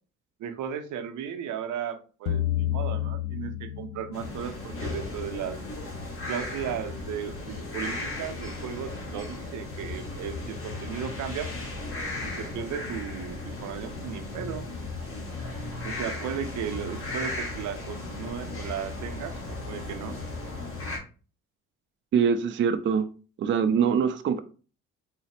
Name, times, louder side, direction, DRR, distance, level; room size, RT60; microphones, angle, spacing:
voice 1, 0.4-5.6 6.3-11.5 12.2-14.7 15.8-20.2, right 8 dB, 80° right, 0.6 m, -35 dB
sound 1, 2.3-4.7, left 12 dB, 85° left, 0.5 m, -29 dB
sound 2, 4.1-21.0, left 2 dB, 45° left, 1.5 m, -36 dB
voice 2, 22.1-23.1 23.4-24.4, right 7 dB, 40° right, 0.4 m, -23 dB
4.0 x 2.0 x 4.2 m
cardioid pair, 90°, 30 cm